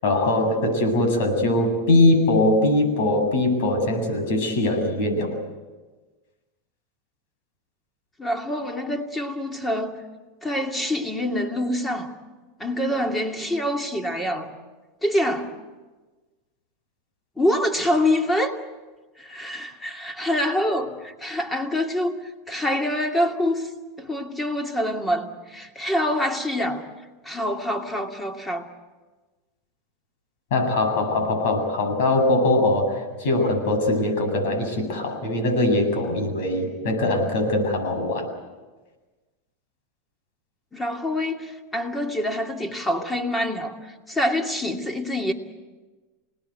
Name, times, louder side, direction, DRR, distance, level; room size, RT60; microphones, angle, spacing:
voice 1, 0.0-5.3 30.5-38.3, left 2 dB, 70° left, 7.8 m, -21 dB
voice 2, 8.2-10.0 10.4-12.1 12.6-14.5 15.0-15.6 17.4-18.6 19.2-23.7 24.0-26.8 27.2-28.7 40.7-43.8 44.1-45.3, left 1 dB, 10° left, 2.5 m, -25 dB
27.5 x 19.5 x 8.1 m
supercardioid pair, 125°, 0 cm